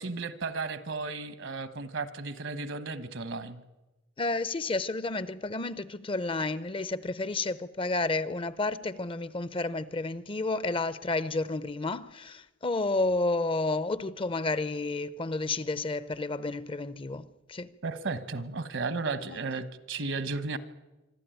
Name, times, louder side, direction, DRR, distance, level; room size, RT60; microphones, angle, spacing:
voice 1, 0.0-3.6 17.8-20.6, right 3 dB, 70° right, 1.2 m, -34 dB
voice 2, 4.2-17.7 19.3-19.4, left 2 dB, 25° left, 0.6 m, -31 dB
25.5 x 12.0 x 9.1 m
head